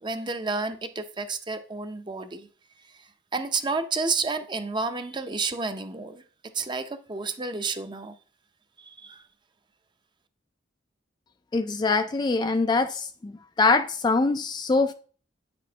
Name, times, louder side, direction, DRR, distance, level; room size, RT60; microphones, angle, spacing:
voice 1, 0.0-2.5 3.3-6.2 6.5-8.1 8.8-9.2, right 4 dB, 25° right, 0.6 m, -30 dB
voice 2, 11.5-13.3 13.6-14.9, left 3 dB, 25° left, 0.3 m, -23 dB
9.2 x 6.1 x 2.8 m
head